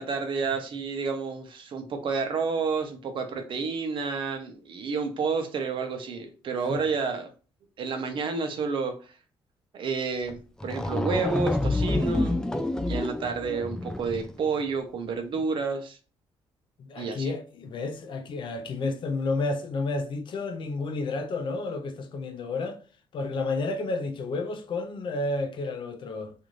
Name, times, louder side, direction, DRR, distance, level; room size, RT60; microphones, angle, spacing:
voice 1, 0.0-7.3 7.8-9.0 9.7-12.4 12.9-16.0 17.0-17.3, right 4 dB, 60° right, 0.7 m, -30 dB
sound 1, 10.3-10.4 10.6-14.4, left 2 dB, 5° left, 0.3 m, -28 dB
voice 2, 16.8-22.8 23.1-26.3, left 3 dB, 55° left, 0.5 m, -31 dB
2.6 x 2.5 x 3.1 m
cardioid pair, 100°, 10 cm